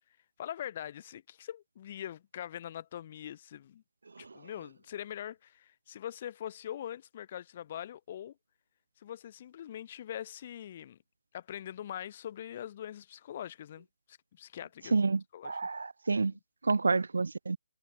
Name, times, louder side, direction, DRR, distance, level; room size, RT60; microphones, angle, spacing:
voice 1, 0.4-3.8 4.2-8.4 9.0-11.0 11.3-15.1 15.3-15.6, left 10 dB, 30° left, 3.6 m, -43 dB
voice 2, 14.9-16.3 16.6-17.6, right 4 dB, 90° right, 0.7 m, -29 dB
hypercardioid pair, 170°, 0 cm